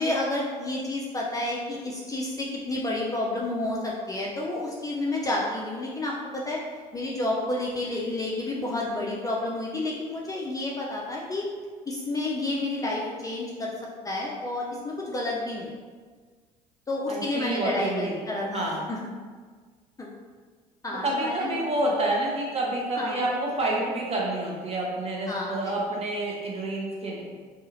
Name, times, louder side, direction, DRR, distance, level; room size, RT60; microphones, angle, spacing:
voice 1, 0.0-6.6 6.9-11.5 11.9-13.7 14.0-15.7 16.9-19.1 20.0-20.1 20.8-21.5 23.0-23.2 25.3-25.8, left 2 dB, 15° left, -3 dB, 0.4 m, -30 dB
voice 2, 17.1-18.2 18.5-18.8 21.0-27.3, right 1 dB, 30° right, -3 dB, 0.8 m, -28 dB
2.7 x 2.4 x 2.9 m, 1.5 s
hypercardioid pair, 60°, 20 cm